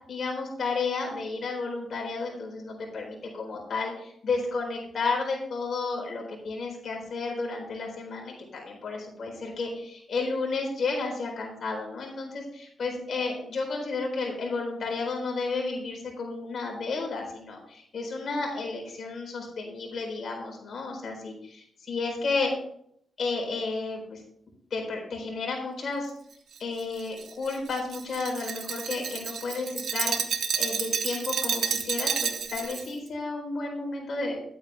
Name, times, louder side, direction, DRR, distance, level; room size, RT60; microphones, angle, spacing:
voice 1, 0.1-22.5 23.2-24.2 24.7-26.1 26.6-34.4, left 3 dB, 55° left, 0 dB, 4.2 m, -32 dB
Glass, 26.5-32.9, right 7 dB, 70° right, 1.1 m, -30 dB
11.0 x 8.7 x 3.5 m, 0.69 s
wide cardioid pair, 125°, 0 cm